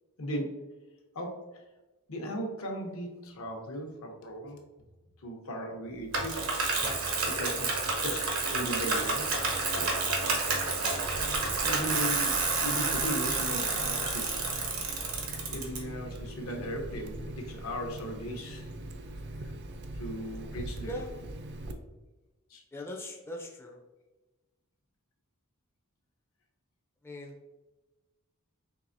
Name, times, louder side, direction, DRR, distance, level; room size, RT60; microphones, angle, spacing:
voice 1, 0.2-0.5 1.1-1.4 2.1-4.6 5.2-6.4 6.8-6.9 7.3-7.7 8.0-9.3 9.8-9.9 11.6-12.3 12.6-14.4 15.5-18.7 19.4-19.5 19.9-21.0 22.5-22.6, equal, 75° left, 2 dB, 0.8 m, -37 dB
Bicycle, 6.1-15.8, right 3 dB, 85° right, 0.9 m, -29 dB
Water tap faucet, 11.0-21.7, right 1 dB, 55° right, 0.4 m, -42 dB
voice 2, 22.7-23.8 27.0-27.3, left 1 dB, 10° left, -1 dB, 0.4 m, -40 dB
4.6 x 3.2 x 2.5 m, 1.1 s
head